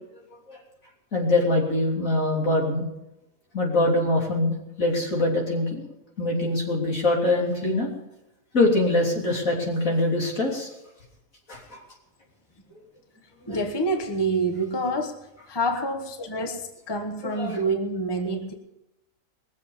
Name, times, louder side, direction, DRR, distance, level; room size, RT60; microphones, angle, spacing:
voice 1, 1.1-2.9 3.5-5.8 6.2-7.9 8.5-10.7 11.5-11.8 13.5-13.6 17.3-17.6, left 2 dB, 65° left, -1 dB, 3.7 m, -23 dB
voice 2, 13.5-15.2 15.5-18.5, right 2 dB, 20° left, 5 dB, 1.1 m, -27 dB
20.5 x 7.3 x 7.1 m, 0.91 s
omnidirectional pair, 1.5 m